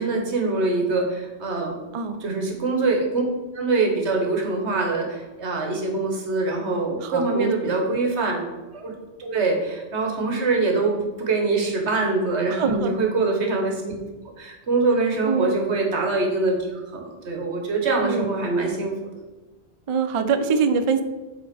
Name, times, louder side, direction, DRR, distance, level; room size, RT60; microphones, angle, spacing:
voice 1, 0.0-1.8 2.2-3.2 3.5-8.5 8.7-8.9 9.2-13.9 14.4-18.9, right 3 dB, 85° right, 1 dB, 1.6 m, -24 dB
voice 2, 7.0-8.0 12.5-13.0 15.3-15.6 18.0-18.3 19.9-21.0, right 5 dB, 50° right, 9 dB, 0.4 m, -24 dB
7.8 x 3.7 x 5.2 m, 1.2 s
omnidirectional pair, 1.1 m